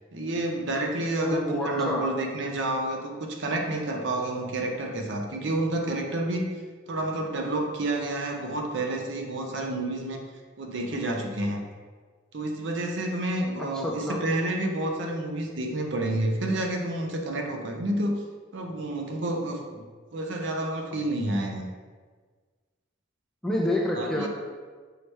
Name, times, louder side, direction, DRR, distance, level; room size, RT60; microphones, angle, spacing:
voice 1, 0.1-6.5 6.9-10.3 10.6-11.6 12.3-18.2 18.5-19.8 20.1-21.7 24.0-24.3, right 1 dB, 65° right, 2 dB, 0.6 m, -29 dB
voice 2, 1.2-2.1 13.7-14.2 23.4-24.3, left 1 dB, 5° left, -2 dB, 0.4 m, -27 dB
4.6 x 3.2 x 3.2 m, 1.5 s
head